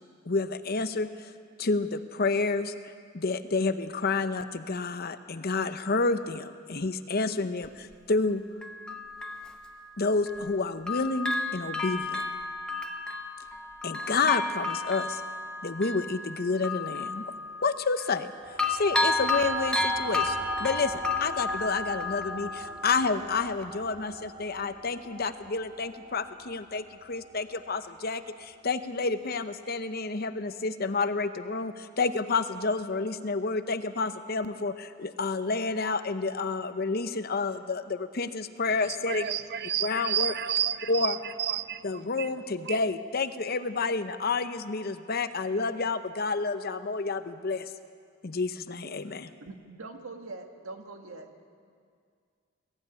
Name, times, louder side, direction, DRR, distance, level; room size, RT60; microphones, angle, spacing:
voice 1, 0.3-1.3 1.6-2.7 3.1-8.4 10.0-12.2 13.8-15.2 15.6-17.3 17.6-18.3 18.7-39.3 39.8-40.3 40.9-41.1 41.8-47.7 48.2-49.3, left 4 dB, 45° left, 10 dB, 0.8 m, -29 dB
Bell, 7.6-7.7 8.6-10.6 10.9-18.3 18.6-23.2 23.6-23.7, left 2 dB, 5° left, 1.0 m, -32 dB
sound 1, 18.4-29.2, right 1 dB, 25° right, 1.2 m, -41 dB
voice 2, 38.8-42.3 42.6-42.9, right 10 dB, 50° right, 12 dB, 0.7 m, -31 dB
voice 3, 49.4-51.3, right 3 dB, 80° right, 4 dB, 1.9 m, -43 dB
21.0 x 15.0 x 9.6 m, 2.2 s
head